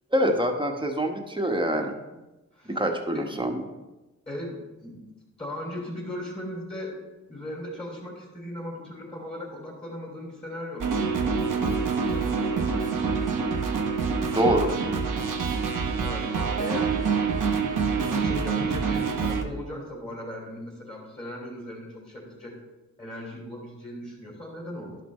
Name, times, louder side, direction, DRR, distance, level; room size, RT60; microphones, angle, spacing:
voice 1, 0.1-1.9 2.7-3.5 14.3-14.8, equal, 15° right, 3 dB, 1.3 m, -25 dB
voice 2, 4.3-5.0 5.4-7.0 7.3-10.9 11.2-12.9 16.0-17.0 17.5-22.5 23.0-25.0, left 1 dB, 20° left, -4 dB, 3.2 m, -38 dB
sound 1, 10.8-19.4, right 5 dB, 80° right, 0.9 m, -26 dB
11.0 x 6.0 x 3.2 m, 1.1 s
cardioid pair, 45°, 31 cm